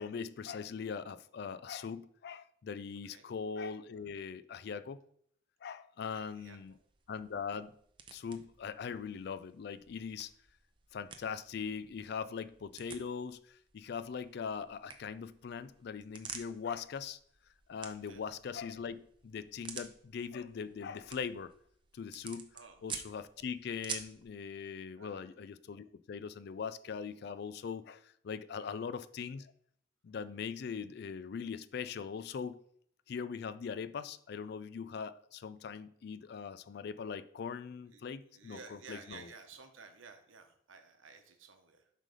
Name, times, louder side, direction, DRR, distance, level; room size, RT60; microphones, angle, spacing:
voice 1, 0.0-5.0 5.6-6.7 7.1-7.7 8.1-10.3 10.9-17.2 17.7-21.5 21.9-22.5 22.8-29.5 30.0-32.6 33.1-39.3, left 6 dB, 55° left, 0.3 m, -41 dB
sound 1, 6.1-24.3, right 6 dB, 25° right, 0.5 m, -51 dB
voice 2, 6.1-6.8 18.0-18.2 22.5-22.8 25.0-25.3 28.6-28.8 36.3-36.4 37.9-38.0 38.3-41.9, right 5 dB, 85° right, 1.0 m, -54 dB
7.5 x 3.3 x 5.3 m
head